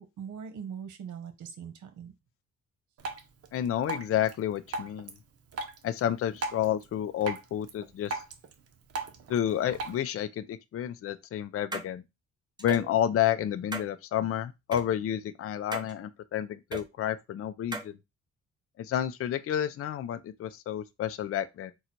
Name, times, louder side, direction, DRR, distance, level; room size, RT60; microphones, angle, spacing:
voice 1, 0.0-2.1, right 7 dB, 75° right, 1.1 m, -41 dB
Drip, 3.0-10.0, right 3 dB, 50° right, 0.9 m, -40 dB
voice 2, 3.5-5.2 5.8-8.2 9.3-12.0 12.6-17.9 18.8-21.7, left 10 dB, 50° left, 0.5 m, -30 dB
sound 1, 11.7-11.9 12.6-12.9 13.7-13.9 14.7-14.8 15.7-15.9 16.7-16.8 17.7-17.9, right 3 dB, 15° right, 0.8 m, -36 dB
3.9 x 2.3 x 4.4 m
cardioid pair, 90°, 30 cm